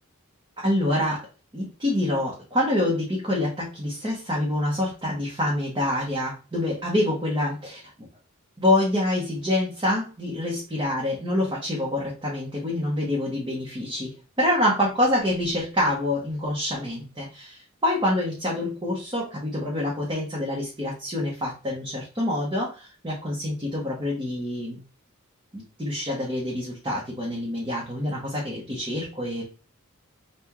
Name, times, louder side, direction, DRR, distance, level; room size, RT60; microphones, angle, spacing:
voice 1, 0.6-1.3 1.5-7.8 8.6-24.8 25.5-29.4, left 1 dB, 20° right, -4 dB, 1.1 m, -26 dB
5.7 x 2.5 x 3.1 m, 0.35 s
head